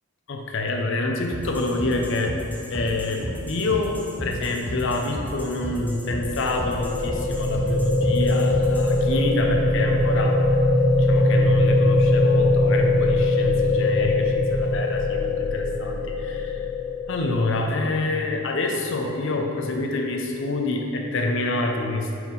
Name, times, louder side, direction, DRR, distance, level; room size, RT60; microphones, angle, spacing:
voice 1, 0.3-2.4 2.7-10.4 10.9-16.6 17.1-22.2, left 2 dB, 60° left, 2 dB, 0.6 m, -27 dB
sound 1, 1.3-9.0, equal, 10° left, 0.6 m, -34 dB
sound 2, 5.7-17.7, left 2 dB, 85° left, 1.5 m, -21 dB
5.5 x 4.5 x 3.9 m, 2.6 s
head